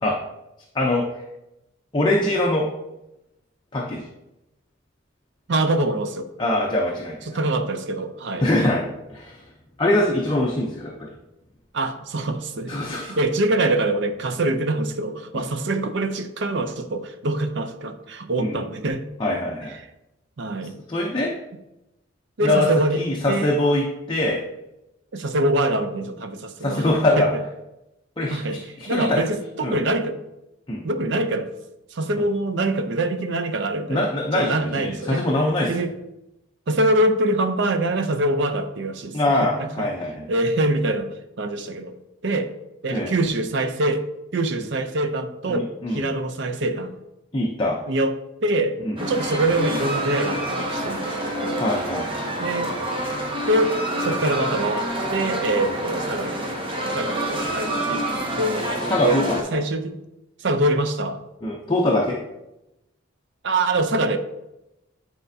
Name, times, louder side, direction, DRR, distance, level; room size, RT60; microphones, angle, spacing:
voice 1, 0.7-1.1 1.9-2.7 3.7-4.1 6.4-7.3 8.4-9.4 9.8-11.1 12.7-13.2 15.3-15.4 18.4-18.6 19.2-19.8 20.9-21.4 22.4-22.7 22.9-24.4 26.6-27.3 28.2-29.2 29.6-29.8 30.7-30.8 33.9-35.7 39.1-40.3 42.9-43.1 45.5-46.0 47.3-47.8 48.8-49.0 51.6-52.1 55.7-55.8 58.9-59.4 61.4-62.2, left 1 dB, 25° left, -2 dB, 0.6 m, -23 dB
voice 2, 5.5-6.3 7.3-8.5 11.7-19.0 20.4-20.8 22.4-23.6 25.1-26.9 27.2-27.3 28.3-28.6 28.9-30.2 30.8-31.5 31.9-35.3 35.7-35.9 36.7-39.9 40.3-41.1 41.4-41.9 42.2-42.5 42.8-44.0 44.3-46.9 47.9-48.1 48.4-51.6 52.4-52.7 53.5-56.5 56.8-58.1 58.4-58.7 59.0-59.2 59.5-60.0 60.4-61.2 63.4-64.2, right 2 dB, 60° right, 8 dB, 0.5 m, -24 dB
sound 1, 49.0-59.4, right 1 dB, 25° right, 0.9 m, -27 dB
8.9 x 4.2 x 2.7 m, 0.92 s
head